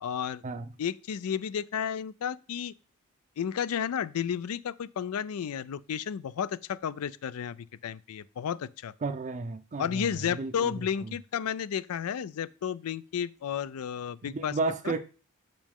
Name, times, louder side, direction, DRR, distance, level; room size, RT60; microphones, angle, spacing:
voice 1, 0.0-0.4 0.8-2.7 3.4-7.6 7.8-8.9 9.8-14.5, left 8 dB, 75° left, 0.4 m, -32 dB
voice 2, 9.0-11.1 14.2-15.0, right 3 dB, 35° right, 0.5 m, -33 dB
7.3 x 5.2 x 3.5 m
head